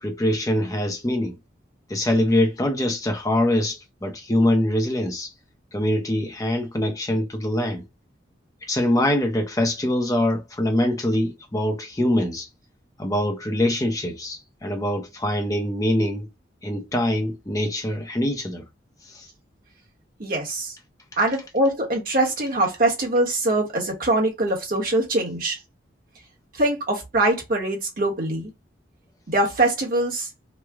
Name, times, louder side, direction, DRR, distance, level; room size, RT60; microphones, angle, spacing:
voice 1, 0.0-1.4 1.9-5.3 5.7-7.8 8.6-12.5 13.0-16.3 16.6-18.6 19.1-19.2 21.3-21.4, left 1 dB, 20° left, 0.6 m, -24 dB
voice 2, 20.2-20.8 21.2-25.6 26.5-28.5 29.3-30.3, right 1 dB, 50° right, 1.2 m, -23 dB
3.1 x 2.1 x 3.5 m
head